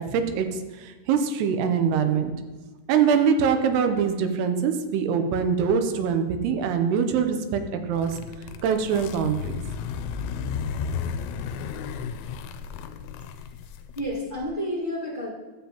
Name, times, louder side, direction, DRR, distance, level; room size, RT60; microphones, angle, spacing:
voice 1, 0.0-2.3 2.9-8.1 8.6-9.6, right 6 dB, 80° right, 7 dB, 2.7 m, -23 dB
sound 1, 7.9-14.5, left 6 dB, 85° left, 2.7 m, -34 dB
voice 2, 13.9-15.3, equal, 45° left, -9 dB, 0.6 m, -30 dB
12.5 x 7.3 x 2.9 m, 1.3 s
omnidirectional pair, 4.7 m